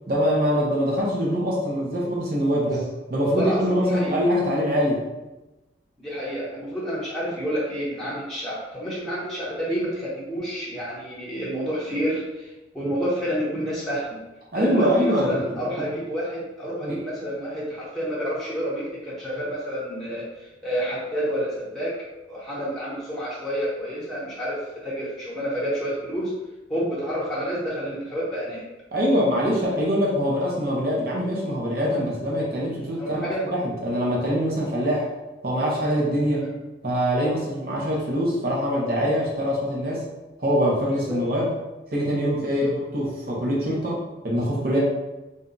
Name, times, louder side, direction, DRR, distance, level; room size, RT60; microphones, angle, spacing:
voice 1, 0.1-2.8 3.1-5.0 14.5-15.7 16.8-17.0 28.9-35.1 35.4-36.4 36.8-40.1 40.4-41.5 41.9-44.8, equal, 50° right, -4 dB, 0.9 m, -24 dB
voice 2, 3.2-4.2 6.0-14.2 14.5-21.9 22.3-26.3 26.7-28.6 30.4-30.5 33.0-33.4 36.4-36.5 40.9-41.2 42.3-42.7, equal, ahead, -9 dB, 0.8 m, -29 dB
2.7 x 2.3 x 3.9 m, 1.0 s
head